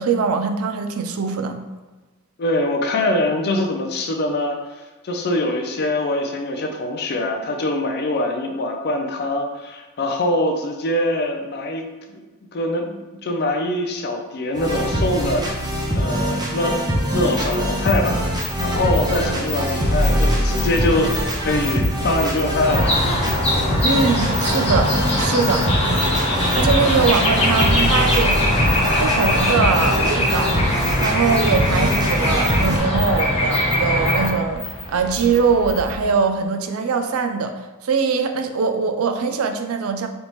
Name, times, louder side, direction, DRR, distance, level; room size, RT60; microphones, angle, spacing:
voice 1, 0.0-1.6 23.8-25.7 26.3-28.4 29.0-30.6 31.0-37.5 37.8-40.1, right 5 dB, 70° right, 7 dB, 0.4 m, -22 dB
voice 2, 2.4-11.8 12.1-12.2 12.5-16.8 17.1-18.2 18.6-21.1 21.4-23.0, left 1 dB, 45° left, 3 dB, 0.4 m, -23 dB
sound 1, 14.5-32.8, equal, 20° right, 0.6 m, -23 dB
sound 2, 17.3-36.2, left 2 dB, 85° left, 1.5 m, -33 dB
sound 3, 22.7-34.3, left 1 dB, 30° left, 0.8 m, -21 dB
4.0 x 3.4 x 3.0 m, 1.2 s
head